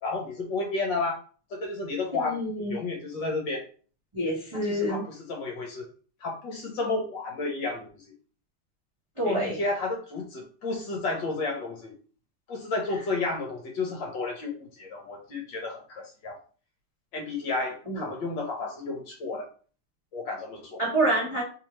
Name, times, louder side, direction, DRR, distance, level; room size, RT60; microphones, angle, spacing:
voice 1, 0.0-1.2 1.5-3.7 4.5-5.9 6.2-8.0 9.2-11.9 12.5-16.4 17.1-19.5 20.1-20.8, left 3 dB, 65° left, 1 dB, 1.3 m, -32 dB
voice 2, 2.1-2.7 4.1-5.0 9.2-9.6 17.9-18.1 20.8-21.4, right 1 dB, 25° right, -5 dB, 0.7 m, -27 dB
3.5 x 2.8 x 3.0 m, 0.39 s
omnidirectional pair, 2.4 m